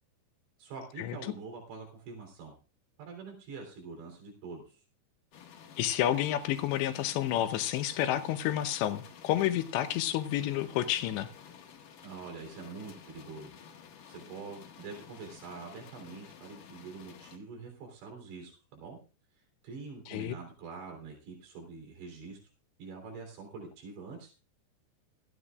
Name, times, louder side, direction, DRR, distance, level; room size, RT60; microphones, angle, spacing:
voice 1, 0.6-2.5 3.0-4.8 12.0-13.5 14.1-19.0 19.6-22.4 22.8-24.3, right 4 dB, 85° right, 5.8 m, -45 dB
sound 1, 5.3-17.4, left 8 dB, 60° left, 2.5 m, -52 dB
voice 2, 5.8-11.3 20.1-20.3, left 12 dB, 80° left, 3.1 m, -30 dB
18.5 x 13.5 x 2.5 m
omnidirectional pair, 5.0 m